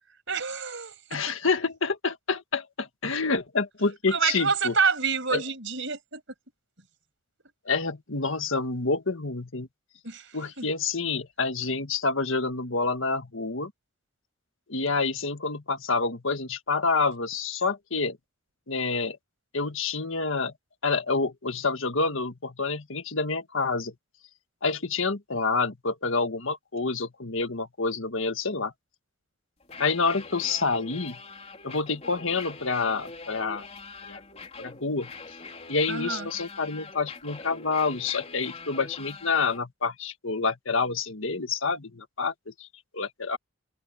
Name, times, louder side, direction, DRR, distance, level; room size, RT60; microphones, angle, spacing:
voice 1, 0.3-1.3 4.1-6.2 10.0-10.3 10.6-10.7 35.9-36.3, right 5 dB, 60° right, 6.4 m, -28 dB
voice 2, 1.1-4.7 5.3-5.4 7.6-9.7 10.3-13.7 14.7-18.2 18.7-19.2 19.5-20.5 20.8-23.9 24.6-28.7 29.8-31.2 31.6-33.6 34.0-34.2 34.6-35.1 35.7-42.7 42.9-43.4, left 4 dB, 65° left, 1.7 m, -28 dB
sound 1, 29.6-39.6, left 4 dB, 30° left, 3.8 m, -43 dB
head